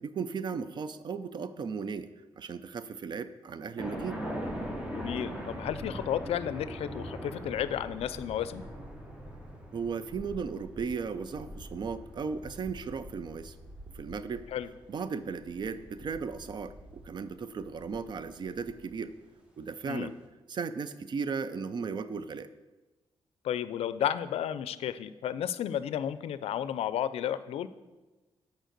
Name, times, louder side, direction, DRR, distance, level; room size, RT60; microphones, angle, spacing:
voice 1, 0.0-4.2 9.7-13.5 13.9-14.5 14.9-19.2 19.6-20.2 20.5-22.5, right 5 dB, 50° right, 13 dB, 0.4 m, -36 dB
sound 1, 3.8-18.9, equal, 10° right, 1.1 m, -42 dB
voice 2, 4.9-8.6 14.5-14.7 19.9-20.1 23.4-27.7, left 10 dB, 85° left, 14 dB, 0.4 m, -32 dB
6.4 x 4.9 x 6.5 m, 1.2 s
cardioid pair, 110°, 10 cm